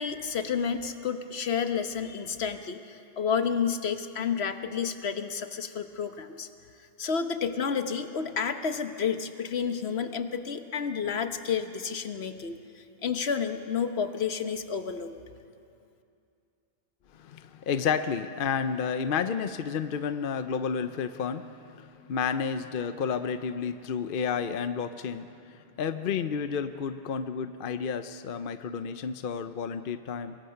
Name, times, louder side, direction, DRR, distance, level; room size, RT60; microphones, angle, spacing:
voice 1, 0.0-6.5 7.0-15.1, left 6 dB, 80° left, 8 dB, 1.3 m, -30 dB
voice 2, 17.1-30.4, left 6 dB, 60° left, 10 dB, 0.8 m, -31 dB
25.0 x 21.5 x 5.8 m, 2.5 s
omnidirectional pair, 1.1 m